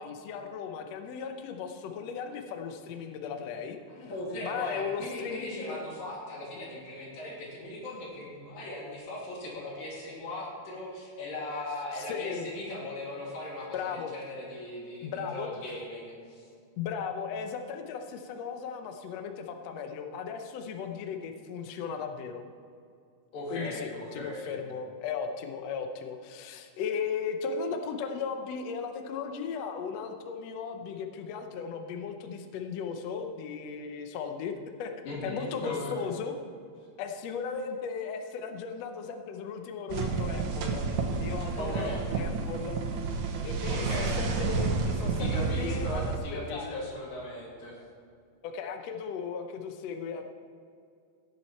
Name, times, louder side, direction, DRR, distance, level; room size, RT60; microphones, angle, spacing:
voice 1, 0.0-4.1 4.4-5.9 11.9-12.5 13.7-14.1 15.0-15.5 16.8-22.4 23.5-34.5 34.8-36.3 37.0-40.9 41.2-42.8 43.4-46.8 48.4-50.3, left 6 dB, 70° left, 5 dB, 1.7 m, -36 dB
voice 2, 4.0-16.5 23.3-24.5 35.1-36.1 41.6-42.2 43.7-44.3 45.2-47.8, left 1 dB, 90° left, -4 dB, 4.4 m, -38 dB
sound 1, 39.9-46.2, right 4 dB, 70° right, 2.2 m, -30 dB
16.5 x 7.6 x 4.3 m, 2.3 s
omnidirectional pair, 3.9 m